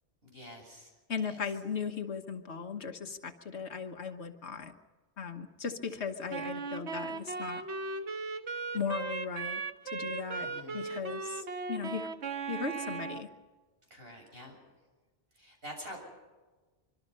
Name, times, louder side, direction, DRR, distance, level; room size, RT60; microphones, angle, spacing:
voice 1, 0.2-0.9 1.3-1.4 10.4-10.8 13.9-14.5 15.3-16.0, equal, 60° right, 1 dB, 7.3 m, -47 dB
voice 2, 1.1-4.7 5.2-7.6 8.7-9.6 9.9-12.1 12.5-13.3, left 5 dB, 80° left, 5 dB, 1.5 m, -37 dB
Wind instrument woodwind instrument, 6.3-13.3, right 4 dB, 90° right, 1.5 m, -37 dB
25.5 x 24.5 x 5.5 m, 1.3 s
omnidirectional pair, 1.1 m